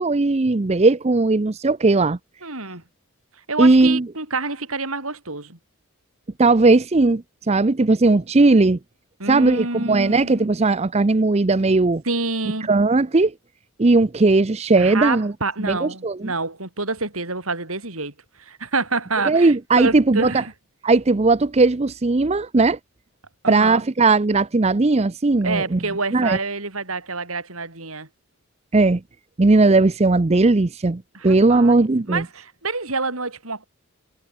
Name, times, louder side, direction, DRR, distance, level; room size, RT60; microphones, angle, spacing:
voice 1, 0.0-2.2 3.6-4.0 6.4-8.8 9.3-12.0 12.7-13.3 13.8-15.3 15.6-16.3 19.3-20.4 20.8-22.8 23.5-25.8 26.1-26.4 28.7-29.0 29.4-32.2, right 3 dB, 30° right, 0.6 m, -17 dB
voice 2, 2.4-2.8 3.5-5.6 9.2-10.5 12.0-12.7 14.8-20.5 23.4-23.8 25.4-28.1 31.1-31.8 32.1-33.7, right 3 dB, 75° right, 6.6 m, -27 dB
head